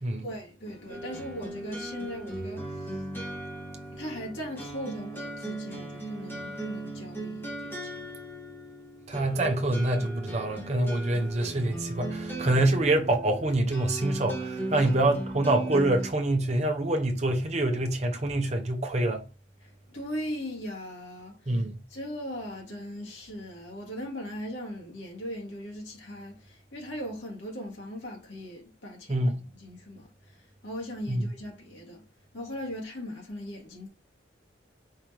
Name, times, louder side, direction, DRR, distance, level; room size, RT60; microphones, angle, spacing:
voice 1, 0.2-3.0 3.9-7.9 14.7-14.9 19.6-21.6 21.9-29.3 29.5-32.0 32.3-33.9, equal, 80° left, 2.1 m, -39 dB
sound 1, 0.9-16.1, right 2 dB, 10° left, 1.5 m, -37 dB
voice 2, 9.1-19.2 21.5-21.7 29.1-29.5 31.1-31.2, right 1 dB, 35° right, 0.8 m, -26 dB
4.9 x 3.3 x 3.0 m
head